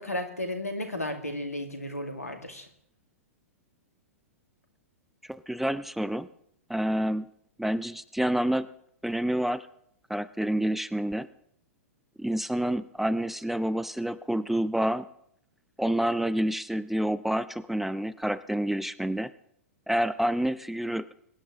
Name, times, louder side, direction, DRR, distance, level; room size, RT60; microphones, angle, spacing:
voice 1, 0.0-2.7, left 1 dB, 90° left, 5 dB, 2.0 m, -34 dB
voice 2, 5.3-6.3 6.7-7.3 7.6-8.7 9.0-9.7 10.1-11.3 12.2-15.1 15.8-19.3 19.9-21.1, right 1 dB, 5° right, 16 dB, 0.5 m, -28 dB
22.5 x 10.0 x 3.6 m, 0.71 s
figure-of-eight pair, 105°, 8 cm